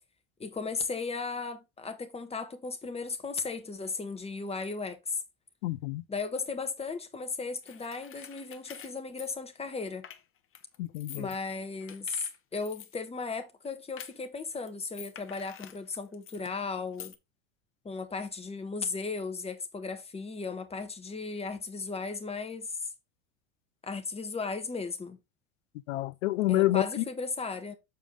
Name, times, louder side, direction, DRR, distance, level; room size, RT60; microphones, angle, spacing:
voice 1, 0.4-5.2 6.1-10.0 11.1-12.3 12.5-17.1 17.8-22.9 23.8-25.2 26.5-27.7, left 4 dB, 15° left, 1.2 m, -36 dB
voice 2, 5.6-6.0 10.8-11.3 25.9-27.0, left 15 dB, 60° left, 0.6 m, -28 dB
sound 1, 7.6-10.2 10.5-11.4 11.8-13.0 13.2-13.3 13.7-13.8 14.0-14.4 14.6-16.6 16.9-17.2, left 10 dB, 30° left, 0.9 m, -48 dB
7.0 x 4.9 x 3.7 m
figure-of-eight pair, 80°, 42 cm